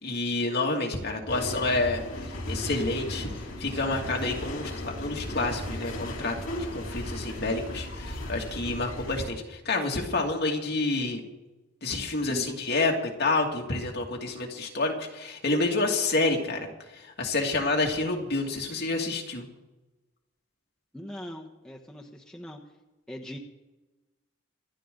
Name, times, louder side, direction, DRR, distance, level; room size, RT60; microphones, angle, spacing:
voice 1, 0.0-2.0 2.5-3.3 3.6-6.3 6.7-11.2 11.8-12.9 13.2-16.7 16.9-19.5, left 2 dB, 55° left, 0 dB, 2.4 m, -28 dB
sound 1, 1.3-9.3, left 1 dB, 80° left, 3.6 m, -36 dB
voice 2, 12.3-12.6 20.9-22.6 23.1-23.4, equal, 5° left, -1 dB, 1.2 m, -40 dB
26.0 x 11.5 x 3.9 m, 1.1 s
head